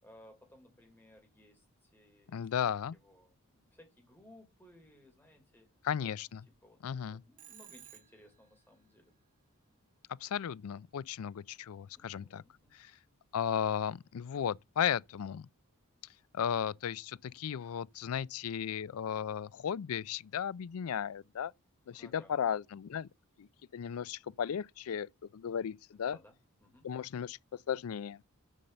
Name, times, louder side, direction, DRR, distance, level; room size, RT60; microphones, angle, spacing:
voice 1, 0.0-2.7 3.0-5.7 6.6-9.1 12.0-12.7 22.0-22.3 25.9-26.3 26.6-26.8, left 1 dB, 10° left, 3.3 m, -60 dB
voice 2, 2.3-3.0 5.8-6.5 6.8-7.2 10.2-12.4 12.7-12.9 13.3-15.5 16.3-21.5 21.9-23.1 23.4-23.5 23.7-26.2 26.8-27.4 27.7-28.2, left 8 dB, 70° left, 0.4 m, -35 dB
Telephone, 7.4-8.5, right 11 dB, 35° right, 0.7 m, -54 dB
7.3 x 5.4 x 6.7 m
head